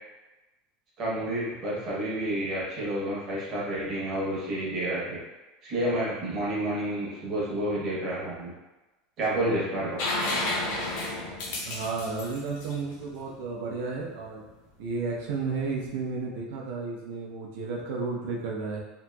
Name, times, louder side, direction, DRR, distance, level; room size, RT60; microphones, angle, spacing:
voice 1, 1.0-5.2 5.6-8.5 9.2-10.0, right 1 dB, 30° right, -6 dB, 0.8 m, -29 dB
sound 1, 10.0-13.7 15.6-15.7, left 2 dB, 60° left, 0.6 m, -31 dB
voice 2, 11.6-14.4 14.8-18.8, right 4 dB, 75° right, -2 dB, 0.6 m, -32 dB
2.8 x 2.6 x 2.2 m, 1.1 s
supercardioid pair, 180°, 0 cm